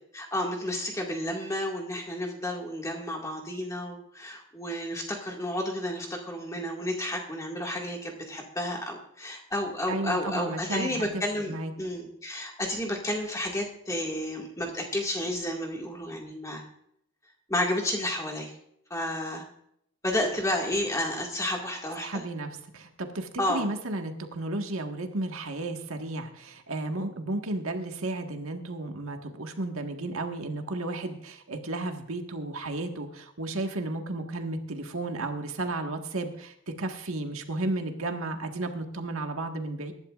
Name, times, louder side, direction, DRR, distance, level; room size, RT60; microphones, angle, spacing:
voice 1, 0.1-16.6 17.5-18.5 18.9-19.4 20.0-22.2 23.4-23.7, left 1 dB, 15° left, 0 dB, 2.1 m, -31 dB
voice 2, 9.9-11.7 22.0-39.9, right 2 dB, 75° right, 4 dB, 1.7 m, -33 dB
23.0 x 11.5 x 2.5 m, 0.75 s
head